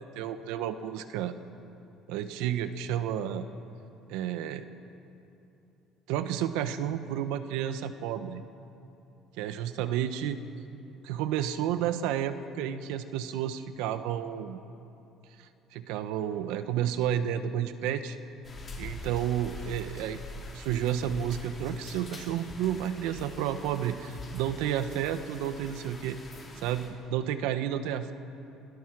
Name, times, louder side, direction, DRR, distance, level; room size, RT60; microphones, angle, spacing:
voice 1, 0.0-1.3 2.1-3.5 4.1-4.6 6.1-8.4 9.4-10.4 11.0-14.6 15.4-18.2 18.8-20.2 20.5-26.2 26.6-28.1, right 10 dB, 90° right, 10 dB, 1.2 m, -31 dB
sound 1, 18.4-26.9, left 2 dB, 25° left, 4.7 m, -44 dB
27.0 x 18.0 x 6.2 m, 2.9 s
cardioid pair, 130°, 0 cm